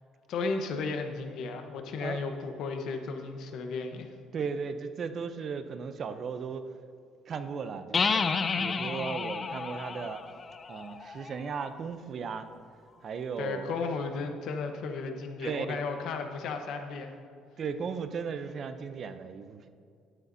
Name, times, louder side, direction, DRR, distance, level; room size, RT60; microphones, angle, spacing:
voice 1, 0.3-4.1 13.4-17.1, left 4 dB, 60° left, 5 dB, 1.0 m, -34 dB
voice 2, 4.3-6.7 7.3-10.2 10.7-12.5 13.0-13.8 15.4-15.8 17.6-19.7, right 5 dB, 40° right, 9 dB, 0.5 m, -36 dB
sound 1, 7.9-11.6, left 5 dB, 25° left, 0.4 m, -31 dB
12.0 x 9.9 x 2.7 m, 2.4 s
cardioid pair, 145°, 0 cm